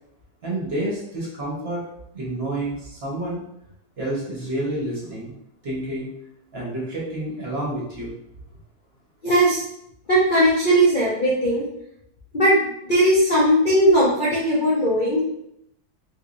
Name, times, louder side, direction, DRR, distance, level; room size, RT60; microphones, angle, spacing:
voice 1, 0.4-1.8 2.1-3.4 4.0-5.3 5.6-6.1 6.5-8.1, right 1 dB, 40° right, -5 dB, 1.1 m, -29 dB
voice 2, 9.2-9.6 10.1-11.7 12.3-15.2, right 1 dB, 75° left, -7 dB, 0.4 m, -18 dB
3.6 x 3.2 x 2.6 m, 0.77 s
omnidirectional pair, 2.0 m